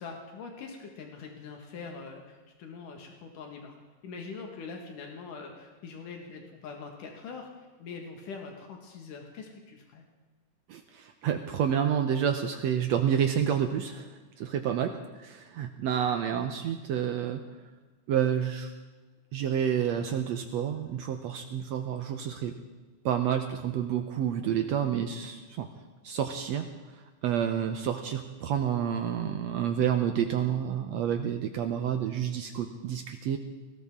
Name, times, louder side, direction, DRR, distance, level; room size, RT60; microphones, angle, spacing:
voice 1, 0.0-3.8 4.0-10.0 14.6-15.0, left 4 dB, 85° left, 2 dB, 3.3 m, -43 dB
voice 2, 10.7-14.1 14.4-17.4 18.1-18.7 19.3-22.5 23.1-25.7 26.0-26.7 27.2-33.4, right 9 dB, 70° right, 6 dB, 1.8 m, -29 dB
20.5 x 18.0 x 3.7 m, 1.3 s
omnidirectional pair, 3.7 m